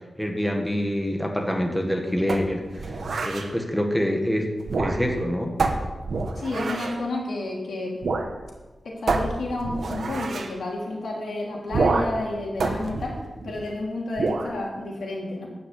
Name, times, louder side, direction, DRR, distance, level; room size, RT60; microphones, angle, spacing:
voice 1, 0.2-2.9 3.2-5.6, equal, 5° left, 2 dB, 1.3 m, -26 dB
sound 1, 2.3-3.5 4.6-5.2 5.6-7.0 8.0-8.3 8.6-8.7 9.1-10.5 11.7-12.2 12.6-13.7 14.2-14.5, right 3 dB, 65° right, 1.2 m, -27 dB
voice 2, 6.3-8.0 8.8-15.5, left 2 dB, 85° left, -2 dB, 3.3 m, -30 dB
12.5 x 5.9 x 8.5 m, 1.2 s
wide cardioid pair, 135°, 0 cm